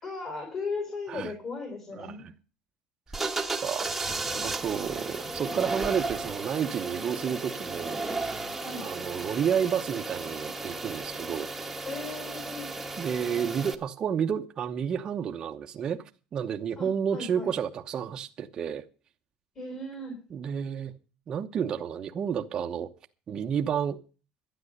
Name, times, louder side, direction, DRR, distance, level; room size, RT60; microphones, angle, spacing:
voice 1, 0.0-2.3 4.3-4.5 8.6-8.9 11.8-12.7 16.8-17.5 19.5-20.2, left 3 dB, 30° left, 4.3 m, -37 dB
voice 2, 1.9-2.3 3.6-3.9 4.4-8.0 8.8-11.5 13.0-16.0 16.3-18.8 20.3-20.9 21.3-22.9 23.3-24.0, right 8 dB, 30° right, 1.0 m, -30 dB
sound 1, 3.1-13.7, right 3 dB, 5° right, 1.4 m, -34 dB
12.5 x 9.7 x 6.6 m
cardioid pair, 155°, 2 cm